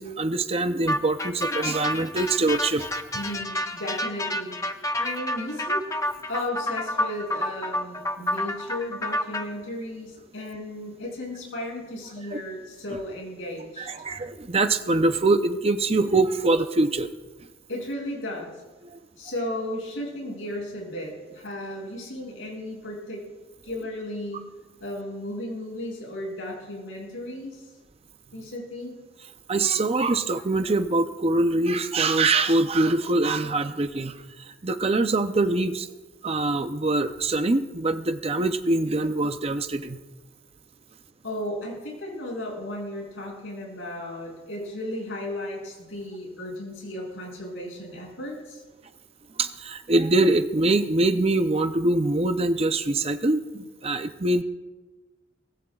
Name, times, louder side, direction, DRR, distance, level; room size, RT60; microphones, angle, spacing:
voice 1, 0.0-2.9 12.3-12.4 13.8-17.1 18.8-19.0 29.5-35.9 36.2-40.0 49.3-54.4, right 2 dB, 30° right, 9 dB, 0.6 m, -24 dB
sound 1, 0.9-9.4, left 1 dB, 15° left, 0.7 m, -29 dB
voice 2, 3.1-5.9 6.3-13.9 17.7-18.5 19.1-23.2 23.6-24.5 24.8-27.7 28.3-28.9 41.2-48.6, left 1 dB, 90° left, -2 dB, 6.3 m, -35 dB
23.5 x 18.0 x 2.4 m, 1.3 s
head